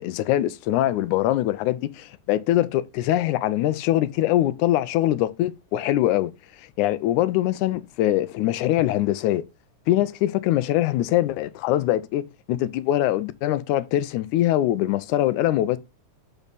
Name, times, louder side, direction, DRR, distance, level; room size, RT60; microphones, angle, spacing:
voice 1, 0.0-6.3 6.6-9.4 9.9-15.8, left 14 dB, 85° left, 2.1 m, -23 dB
7.3 x 5.3 x 4.0 m
omnidirectional pair, 3.5 m